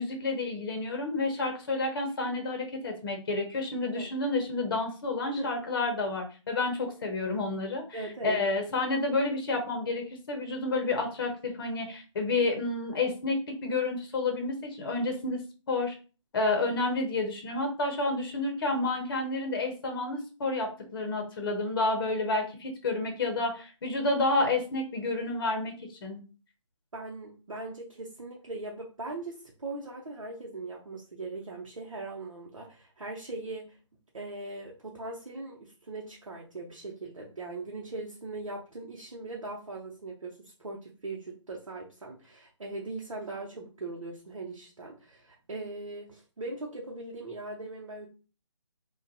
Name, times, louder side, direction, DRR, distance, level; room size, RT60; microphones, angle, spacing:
voice 1, 0.0-8.0 8.2-15.4 15.7-15.9 16.3-26.2, left 2 dB, 45° left, 3 dB, 0.8 m, -30 dB
voice 2, 7.9-8.4 26.9-33.8 34.1-48.1, right 2 dB, 90° right, -2 dB, 0.7 m, -40 dB
2.5 x 2.2 x 2.6 m, 0.34 s
figure-of-eight pair, 150°, 16 cm